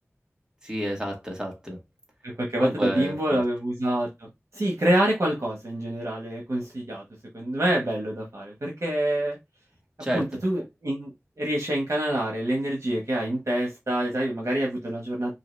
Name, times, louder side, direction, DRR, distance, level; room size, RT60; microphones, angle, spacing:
voice 1, 0.6-1.8 2.6-3.4 10.0-10.4, equal, 15° right, 1.9 m, -30 dB
voice 2, 2.4-4.3 4.5-7.0 7.3-9.4 10.1-11.1 11.4-15.3, right 1 dB, 70° right, 1.2 m, -26 dB
4.6 x 2.9 x 3.2 m
wide cardioid pair, 40°, 5 cm